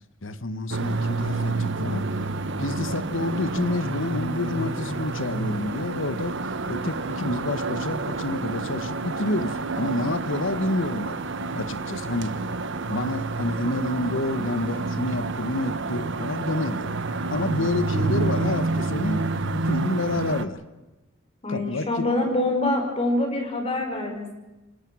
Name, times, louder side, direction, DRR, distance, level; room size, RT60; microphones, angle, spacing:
voice 1, 0.2-2.0 2.6-6.4 6.7-11.2 11.5-12.4 12.9-16.9 17.3-20.6 21.5-21.9, left 2 dB, 70° left, 13 dB, 1.3 m, -28 dB
sound 1, 0.7-20.5, right 3 dB, 65° right, 1.3 m, -29 dB
voice 2, 21.4-24.3, left 2 dB, 30° left, 3 dB, 5.4 m, -25 dB
26.5 x 18.5 x 6.3 m, 1.1 s
head